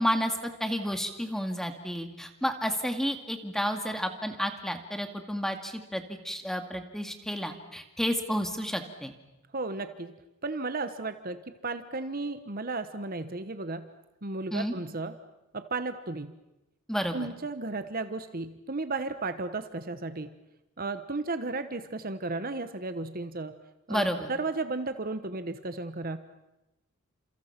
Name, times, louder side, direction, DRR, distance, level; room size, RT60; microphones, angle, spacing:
voice 1, 0.0-9.1 14.5-14.8 16.9-17.3 23.9-24.3, equal, ahead, 6 dB, 2.2 m, -31 dB
voice 2, 9.5-10.1 10.4-11.4 11.6-13.9 14.2-15.1 15.5-16.3 17.1-20.3 20.8-23.6 23.9-26.2, right 3 dB, 40° right, 10 dB, 1.1 m, -34 dB
30.0 x 28.0 x 6.0 m, 0.95 s
head